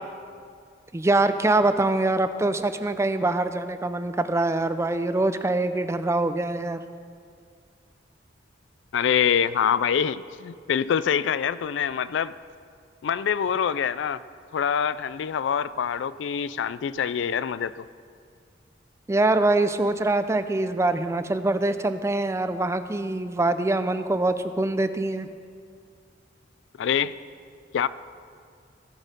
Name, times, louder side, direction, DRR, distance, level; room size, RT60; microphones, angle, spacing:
voice 1, 0.9-6.8 19.1-25.3, right 2 dB, 15° right, 11 dB, 0.4 m, -24 dB
voice 2, 8.9-12.3 13.0-14.2 14.5-17.9 26.8-27.2 27.7-27.9, left 8 dB, 75° left, 16 dB, 0.3 m, -25 dB
17.5 x 6.3 x 5.2 m, 2.2 s
head